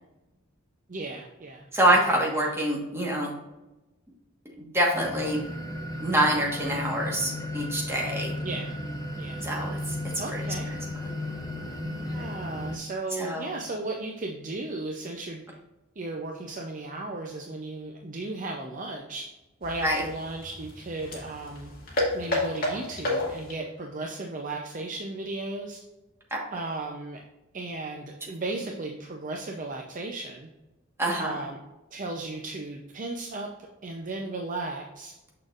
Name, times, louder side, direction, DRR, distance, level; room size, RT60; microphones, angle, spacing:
voice 1, 0.9-2.5 8.4-8.8 9.2-9.5 10.2-10.8 12.1-15.4 16.0-19.3 19.6-21.7 22.1-25.8 26.5-27.2 27.5-30.5 31.2-31.6 31.9-35.1, right 2 dB, 35° right, 1 dB, 0.5 m, -35 dB
voice 2, 1.7-3.3 4.6-5.4 6.0-8.3 9.4-9.8 10.3-10.4 13.2-13.4 19.8-20.0 26.3-26.4 31.0-31.4, right 1 dB, 10° right, -2 dB, 1.3 m, -25 dB
sound 1, 4.8-12.8, left 1 dB, 15° left, 0.6 m, -34 dB
sound 2, 19.6-23.7, left 1 dB, 40° left, 1.9 m, -31 dB
6.5 x 6.4 x 2.5 m, 1.0 s
head